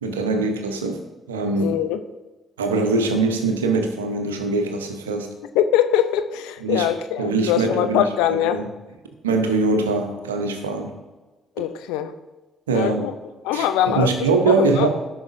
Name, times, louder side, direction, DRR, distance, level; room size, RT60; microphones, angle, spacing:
voice 1, 0.0-1.0 1.3-1.8 2.6-5.3 6.6-6.9 7.2-8.6 9.2-10.9 12.7-13.1 13.5-14.9, right 3 dB, 85° right, 6 dB, 0.8 m, -22 dB
voice 2, 1.5-2.0 5.5-8.6 11.6-12.1 12.7-13.1 13.4-14.1 14.6-14.9, left 11 dB, 75° left, 9 dB, 0.5 m, -22 dB
14.0 x 6.0 x 2.6 m, 1.2 s
hypercardioid pair, 40°, 0 cm